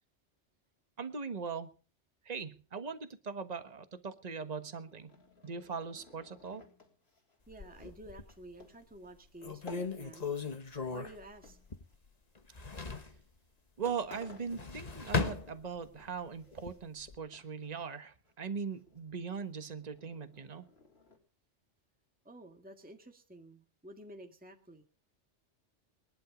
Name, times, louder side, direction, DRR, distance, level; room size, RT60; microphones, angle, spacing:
voice 1, 1.0-1.7 2.2-5.1 5.4-6.6 13.8-20.7, right 5 dB, 35° right, 10 dB, 1.4 m, -40 dB
sound 1, 4.4-10.6 10.8-12.3 13.0-13.2 13.6-13.7 13.9-15.5 15.8-17.1 17.3-17.9 18.2-18.3 18.7-21.2, left 3 dB, 60° left, 3.9 m, -57 dB
sound 2, 7.5-8.5 9.0-9.1 9.4-12.1 12.4-13.2 14.3-16.1 16.5-17.2, left 4 dB, 35° left, 1.4 m, -37 dB
voice 2, 7.5-10.3 10.9-11.6 22.3-24.8, right 1 dB, 5° right, 3 dB, 1.8 m, -51 dB
22.0 x 11.5 x 5.0 m, 0.39 s
omnidirectional pair, 1.2 m